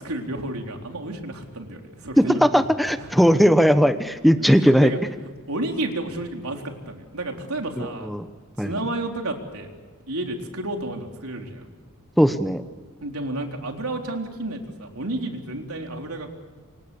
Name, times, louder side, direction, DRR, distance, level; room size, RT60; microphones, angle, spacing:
voice 1, 0.0-3.1 4.8-5.0 5.5-8.1 8.6-9.7 10.1-11.7 13.0-16.3, right 2 dB, 80° right, 2 dB, 3.9 m, -31 dB
voice 2, 2.4-4.9 7.8-8.2 8.6-8.7 12.2-12.6, equal, ahead, 9 dB, 1.0 m, -18 dB
27.5 x 26.5 x 7.1 m, 1.5 s
head